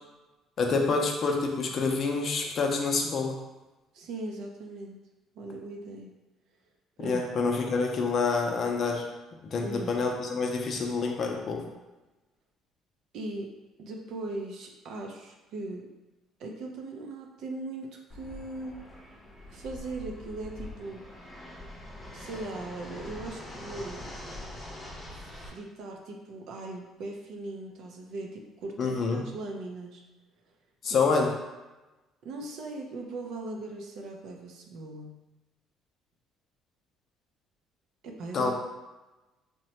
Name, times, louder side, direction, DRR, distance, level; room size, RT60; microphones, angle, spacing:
voice 1, 0.6-3.4 7.0-9.0 9.4-11.6 28.8-29.2 30.8-31.3 38.3-38.5, left 4 dB, 50° left, 1 dB, 0.5 m, -27 dB
voice 2, 3.9-5.0 5.4-6.1 7.0-7.3 9.6-10.1 13.1-13.5 13.8-15.9 16.4-18.8 19.5-21.1 22.1-24.1 25.1-30.0 30.9-31.0 32.2-35.1 38.0-38.5, right 2 dB, 70° right, 1 dB, 0.4 m, -39 dB
Fixed-wing aircraft airplane, 18.1-25.5, left 1 dB, 15° left, 0.7 m, -43 dB
2.9 x 2.1 x 2.8 m, 1.1 s
cardioid pair, 90°, 0 cm